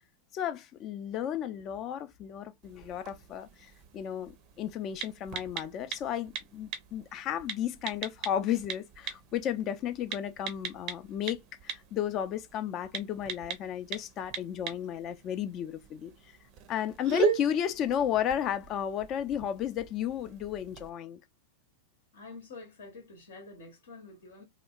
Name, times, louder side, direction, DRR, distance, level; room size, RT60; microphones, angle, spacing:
voice 1, 0.3-16.1 16.7-21.2, left 10 dB, 35° left, 0.4 m, -33 dB
sound 1, 2.6-20.9, right 5 dB, 40° right, 0.5 m, -39 dB
voice 2, 22.1-24.4, left 3 dB, 60° left, 0.8 m, -48 dB
2.8 x 2.1 x 2.3 m
figure-of-eight pair, 90°, 0 cm